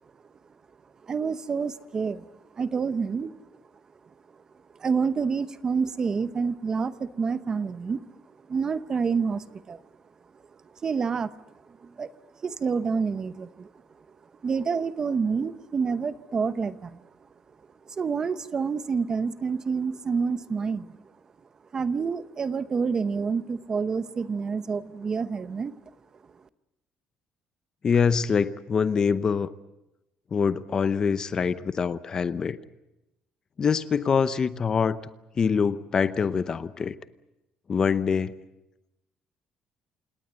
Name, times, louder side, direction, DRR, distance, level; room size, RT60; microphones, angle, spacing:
voice 1, 1.0-2.3 2.5-3.4 4.8-8.0 8.5-9.8 10.8-11.3 11.8-12.1 12.4-13.7 14.4-17.0 17.9-21.0 21.7-25.7, right 5 dB, 30° right, 13 dB, 0.8 m, -28 dB
voice 2, 27.8-29.5 30.3-32.6 33.6-35.0 35.4-36.9 37.7-38.3, left 6 dB, 30° left, 14 dB, 0.8 m, -24 dB
28.5 x 18.5 x 8.1 m, 0.93 s
cardioid pair, 155°, 2 cm